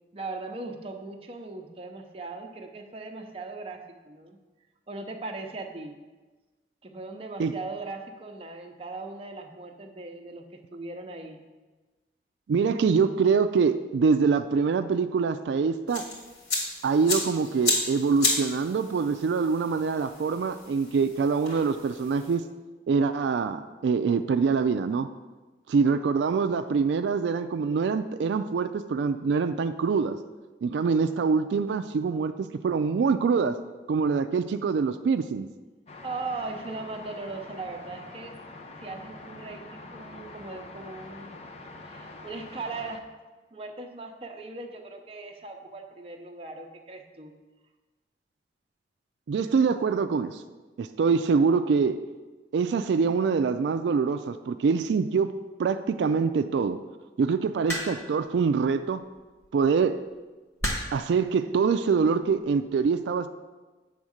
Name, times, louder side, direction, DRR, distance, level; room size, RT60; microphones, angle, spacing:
voice 1, 0.1-4.4 4.9-5.9 6.8-11.4 36.0-38.3 38.8-41.4 41.8-43.0 43.5-47.3, right 3 dB, 35° right, 3 dB, 0.7 m, -39 dB
voice 2, 12.5-16.0 16.8-22.4 22.9-25.1 25.7-30.2 30.6-33.6 33.9-35.5 49.3-50.4 50.8-52.0 52.5-55.3 55.6-56.8 57.2-59.0 59.5-60.0 60.9-63.3, right 5 dB, 85° right, 9 dB, 0.3 m, -24 dB
sound 1, 15.9-22.3, left 2 dB, 75° left, 2.4 m, -32 dB
sound 2, 35.9-43.0, left 2 dB, 35° left, 0.6 m, -45 dB
sound 3, 57.7-58.2 59.4-59.7 60.6-61.1 62.1-62.4, equal, 15° left, 1.3 m, -31 dB
8.6 x 3.6 x 6.3 m, 1.2 s
head